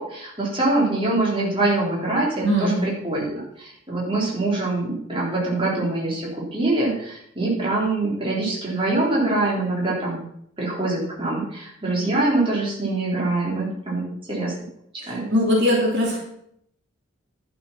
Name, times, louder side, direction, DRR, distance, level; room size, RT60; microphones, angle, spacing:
voice 1, 0.0-10.2 10.6-14.5 14.9-15.3, right 2 dB, 25° right, -5 dB, 3.7 m, -24 dB
voice 2, 2.4-2.8 15.3-16.2, equal, 55° right, -3 dB, 3.0 m, -20 dB
11.5 x 7.0 x 5.9 m, 0.71 s
head